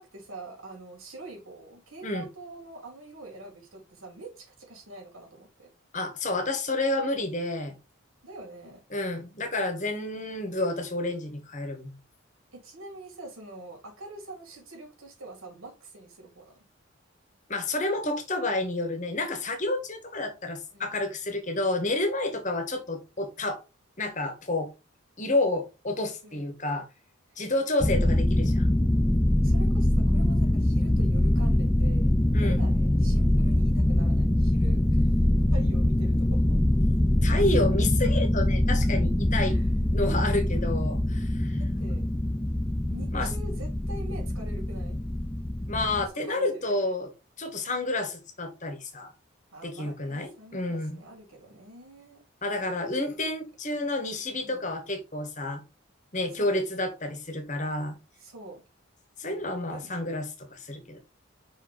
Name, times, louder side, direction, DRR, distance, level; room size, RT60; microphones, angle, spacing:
voice 1, 0.0-5.7 8.2-8.8 12.5-16.7 20.7-21.0 26.2-26.5 27.3-27.4 29.4-35.2 35.5-36.6 39.4-39.7 40.3-40.8 41.6-42.1 42.9-45.0 46.1-46.9 49.5-52.2 52.8-53.1 54.4-54.7 56.3-56.6 58.2-58.6 59.3-60.0, right 2 dB, 85° right, 3.6 m, -45 dB
voice 2, 5.9-7.8 8.9-12.0 17.5-23.6 24.0-24.7 25.2-26.9 27.4-28.7 32.3-32.7 37.2-39.6 39.9-41.6 43.1-43.3 45.7-47.1 47.4-49.1 49.6-51.0 52.4-55.6 56.1-58.0 59.2-61.0, left 2 dB, 35° left, 1.6 m, -30 dB
sound 1, 27.8-46.1, left 1 dB, 10° left, 0.5 m, -24 dB
5.7 x 4.7 x 4.0 m
head